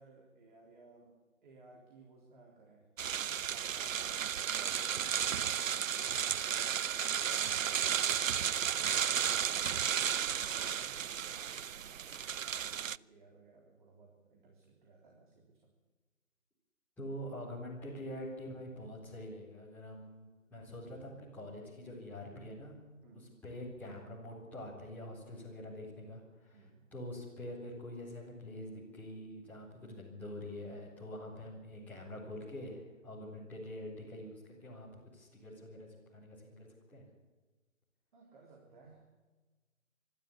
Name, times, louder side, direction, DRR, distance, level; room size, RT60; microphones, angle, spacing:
voice 1, 0.0-2.9 3.2-8.7 9.6-15.7 23.0-23.3 26.5-26.9 33.1-33.4 38.1-39.0, right 3 dB, 35° right, 0 dB, 3.8 m, -60 dB
sound 1, 3.0-13.0, right 9 dB, 70° right, 0.5 m, -33 dB
voice 2, 17.0-22.7 23.4-37.1, left 1 dB, 5° left, -8 dB, 4.1 m, -45 dB
25.5 x 12.5 x 8.6 m, 1.3 s
figure-of-eight pair, 150°, 41 cm